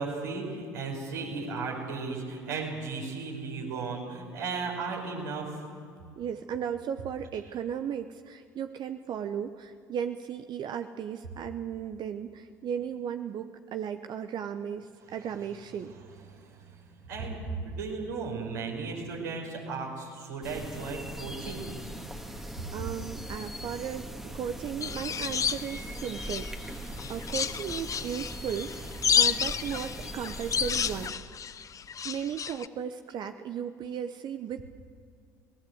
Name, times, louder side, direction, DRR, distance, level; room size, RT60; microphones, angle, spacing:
voice 1, 0.0-5.7 15.1-15.2 16.3-16.7 17.0-21.7, right 4 dB, 80° right, -2 dB, 5.3 m, -35 dB
voice 2, 6.2-15.9 22.2-31.1 32.0-34.6, right 8 dB, 50° right, 8 dB, 0.9 m, -36 dB
sound 1, 20.4-31.1, equal, 5° right, 2.0 m, -40 dB
sound 2, 24.8-26.6 27.0-32.7, left 7 dB, 35° left, 0.8 m, -30 dB
26.0 x 18.0 x 8.0 m, 2.3 s
hypercardioid pair, 65°, 10 cm